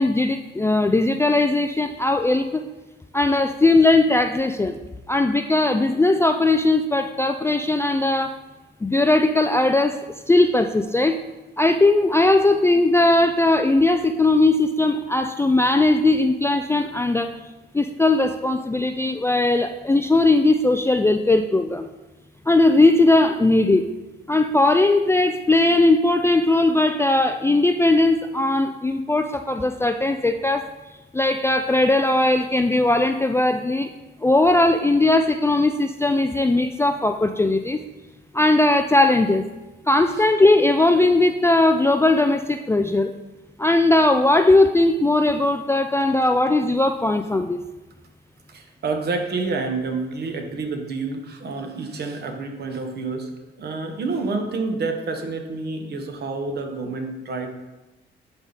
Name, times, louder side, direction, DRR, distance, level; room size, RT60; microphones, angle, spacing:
voice 1, 0.0-2.6 3.1-4.8 5.1-8.3 8.8-11.2 11.6-17.3 17.7-21.9 22.5-23.9 24.3-30.7 31.1-33.9 34.2-37.8 38.3-39.5 39.9-43.1 43.6-47.6, left 2 dB, 15° left, 7 dB, 0.3 m, -19 dB
voice 2, 48.5-53.3 53.6-57.5, right 3 dB, 55° right, 4 dB, 1.1 m, -28 dB
10.0 x 3.6 x 4.0 m, 1.1 s
cardioid pair, 90°, 20 cm